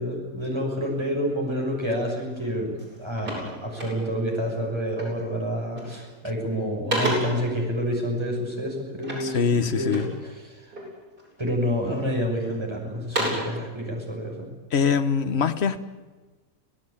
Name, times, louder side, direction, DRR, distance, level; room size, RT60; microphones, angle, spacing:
voice 1, 0.0-10.7 11.4-14.5, equal, 15° right, -1 dB, 6.4 m, -28 dB
sound 1, 2.3-2.5 2.8-4.3 5.0-5.3 5.6-6.1 6.5-7.5 9.0-10.2 10.7-11.3 11.9-12.5 12.9-13.6, right 1 dB, 75° right, 8.8 m, -31 dB
voice 2, 9.2-10.1 14.7-15.8, left 6 dB, 45° left, 10 dB, 1.3 m, -23 dB
26.5 x 17.0 x 8.7 m, 1.3 s
omnidirectional pair, 1.7 m